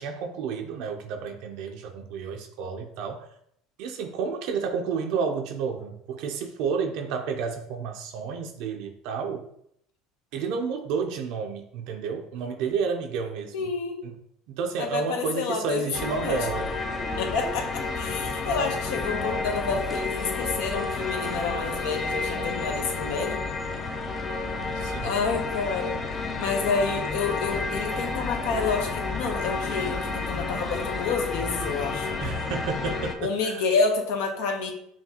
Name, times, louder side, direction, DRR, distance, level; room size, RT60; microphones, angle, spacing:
voice 1, 0.0-3.3 3.8-9.4 10.3-13.7 14.0-14.1 14.5-16.7 24.7-25.2 32.2-33.7, right 5 dB, 70° right, 4 dB, 0.4 m, -31 dB
voice 2, 13.5-14.0 14.8-16.4 17.2-23.4 25.0-32.2 33.2-34.7, left 4 dB, 80° left, 4 dB, 0.8 m, -29 dB
sound 1, 15.9-33.1, left 3 dB, 30° left, 0.5 m, -30 dB
5.8 x 2.3 x 2.8 m, 0.71 s
supercardioid pair, 115°, 0 cm